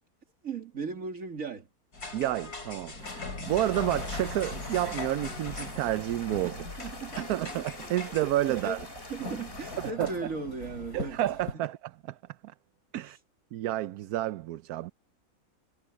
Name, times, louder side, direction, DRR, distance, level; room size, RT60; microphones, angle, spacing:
voice 1, 0.4-1.7 6.4-7.6 8.0-8.1 8.5-11.7 13.0-13.2, right 4 dB, 60° right, 2.7 m, -38 dB
sound 1, 1.9-11.5, left 3 dB, 80° left, 4.5 m, -40 dB
voice 2, 2.1-6.6 7.3-8.8 9.8-10.1 10.9-11.8 12.1-12.2 12.4-12.5 12.9-13.2 13.5-14.9, right 14 dB, 80° right, 1.1 m, -30 dB
sound 2, 3.5-9.9, left 2 dB, 35° left, 4.7 m, -45 dB
omnidirectional pair, 1.6 m